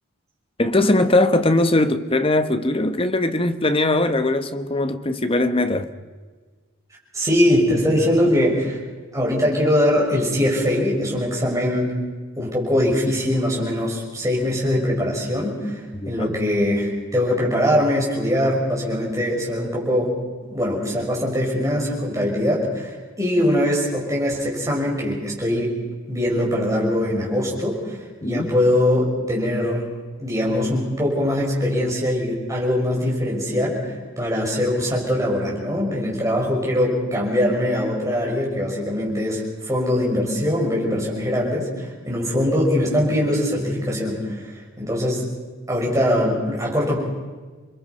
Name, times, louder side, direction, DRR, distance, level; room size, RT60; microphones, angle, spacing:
voice 1, 0.6-5.9 15.9-16.1 28.2-28.5, left 2 dB, 25° left, 1.0 m, -20 dB
voice 2, 7.1-8.8 9.1-11.9 12.4-20.1 20.4-25.7 26.1-29.8 30.2-45.3 45.7-47.0, left 1 dB, 15° right, 6.1 m, -22 dB
29.0 x 22.0 x 5.4 m
head